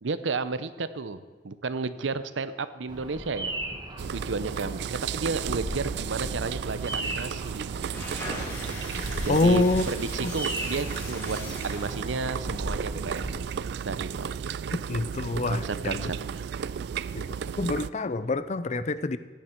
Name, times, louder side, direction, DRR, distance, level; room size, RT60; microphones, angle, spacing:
voice 1, 0.0-1.2 1.4-3.5 4.1-7.7 9.2-11.4 11.6-13.4 13.8-14.7 15.5-16.4, right 4 dB, 90° right, 13 dB, 0.7 m, -32 dB
Bird vocalization bird call bird song, 2.9-13.4, right 1 dB, 25° right, 1.5 m, -37 dB
sound 1, 4.0-17.9, right 7 dB, 60° right, 0.3 m, -34 dB
sound 2, 7.7-12.2, left 1 dB, 15° left, 4.6 m, -39 dB
voice 2, 9.3-9.8 10.2-10.3 14.9-16.1 17.1-17.3 17.6-19.2, left 2 dB, 40° left, 14 dB, 0.5 m, -26 dB
16.0 x 10.5 x 4.5 m, 1.4 s
head